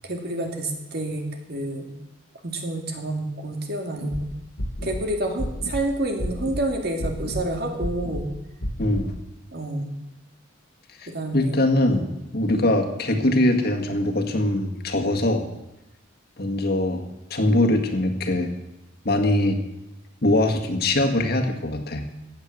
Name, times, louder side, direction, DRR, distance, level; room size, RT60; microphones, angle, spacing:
voice 1, 0.1-2.0 2.4-4.3 4.8-8.3 9.5-9.9 11.1-12.0, right 1 dB, 55° right, 3 dB, 2.4 m, -28 dB
sound 1, 4.0-4.2 4.6-5.0 5.4-5.8 6.2-6.6 7.0-7.4 7.8-8.2 8.6-9.0, equal, 80° left, 1.9 m, -30 dB
voice 2, 8.8-9.1 11.0-12.1 12.3-15.5 16.4-17.0 17.3-18.5 19.1-19.6 20.2-22.0, left 1 dB, 50° left, 3 dB, 1.8 m, -22 dB
15.5 x 8.8 x 7.5 m, 0.91 s
head